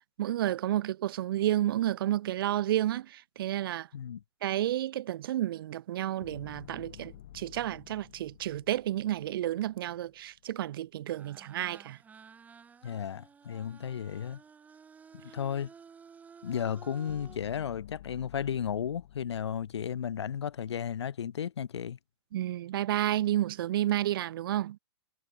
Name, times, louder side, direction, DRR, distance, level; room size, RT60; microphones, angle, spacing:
voice 1, 0.2-3.9 4.4-12.0 22.3-24.8, right 13 dB, 60° right, 0.9 m, -31 dB
sound 1, 6.2-10.5 17.1-20.8, left 12 dB, 60° left, 5.8 m, -52 dB
sound 2, 11.1-17.4, right 6 dB, 10° right, 4.1 m, -53 dB
voice 2, 12.8-14.4 15.3-15.7 16.4-22.0, left 8 dB, 85° left, 1.7 m, -34 dB
hypercardioid pair, 155°, 14 cm